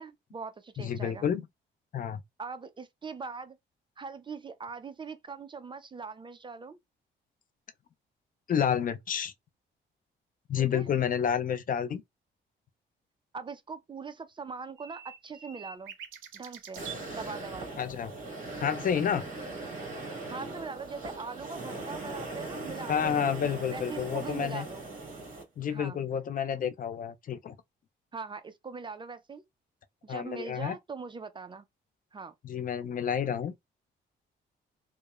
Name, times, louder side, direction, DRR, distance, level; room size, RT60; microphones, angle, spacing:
voice 1, 0.0-1.3 2.4-3.6 4.0-6.8 10.5-10.9 13.3-15.9 16.3-17.8 20.3-23.2 23.7-24.9 25.7-26.0 28.1-29.4 30.0-31.6 32.1-32.3, right 5 dB, 25° right, 0.3 m, -41 dB
voice 2, 0.8-1.5 1.9-2.2 8.5-9.3 10.5-12.0 17.8-18.1 18.6-19.3 22.9-24.6 25.6-27.5 30.1-30.8 32.4-33.5, left 8 dB, 45° left, 0.4 m, -30 dB
sound 1, 14.8-17.0 19.8-19.9, right 9 dB, 80° right, 0.5 m, -45 dB
sound 2, 16.7-25.4, right 2 dB, 45° right, 1.5 m, -39 dB
2.8 x 2.0 x 2.3 m
cardioid pair, 90°, 20 cm